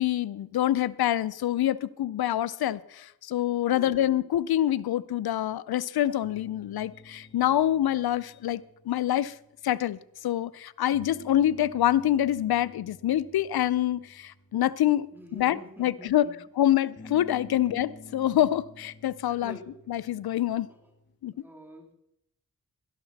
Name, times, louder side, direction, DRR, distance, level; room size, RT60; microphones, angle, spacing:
voice 1, 0.0-9.3 9.6-15.1 15.3-16.3 16.6-19.6 19.9-20.7 21.2-21.3, left 12 dB, 80° left, 19 dB, 0.5 m, -26 dB
voice 2, 3.6-4.0 15.1-16.4 17.5-17.6 19.3-19.7 20.7-20.8 21.3-21.9, equal, 5° right, 2 dB, 2.9 m, -47 dB
sound 1, 6.2-10.1 10.9-16.0 17.0-21.2, left 1 dB, 30° left, 1.6 m, -50 dB
12.0 x 12.0 x 4.0 m, 0.80 s
cardioid pair, 45°, 37 cm